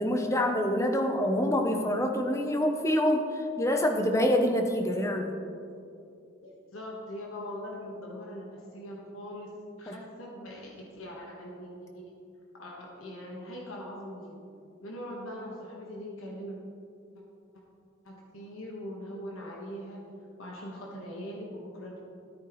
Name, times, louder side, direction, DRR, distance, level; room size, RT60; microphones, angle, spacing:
voice 1, 0.0-5.3 9.9-10.0, left 1 dB, 15° left, 4 dB, 0.7 m, -26 dB
voice 2, 6.4-12.1 12.6-14.4 14.8-16.6 18.0-20.0 20.4-22.0, equal, 85° left, -2 dB, 1.4 m, -41 dB
13.5 x 8.9 x 3.1 m, 2.6 s
head